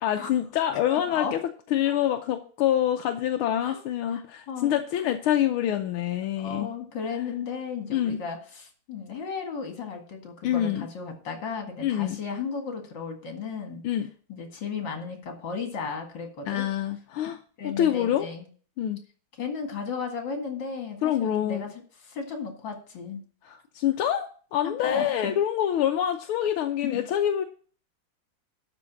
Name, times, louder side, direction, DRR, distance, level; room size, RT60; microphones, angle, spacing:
voice 1, 0.0-1.4 1.7-6.7 7.9-8.2 10.4-10.9 11.8-12.2 13.8-14.1 16.5-17.4 17.6-18.3 18.8-19.0 21.0-21.7 23.5-27.4, left 11 dB, 85° left, 5 dB, 1.6 m, -26 dB
voice 2, 0.9-1.3 1.9-2.0 3.6-3.8 4.1-4.2 4.5-5.1 6.4-13.8 14.3-16.7 17.6-18.5 19.4-21.7 22.0-23.2 24.6-25.3 26.8-27.0, left 5 dB, 60° left, 3 dB, 2.7 m, -35 dB
12.0 x 4.6 x 7.2 m, 0.41 s
omnidirectional pair, 2.3 m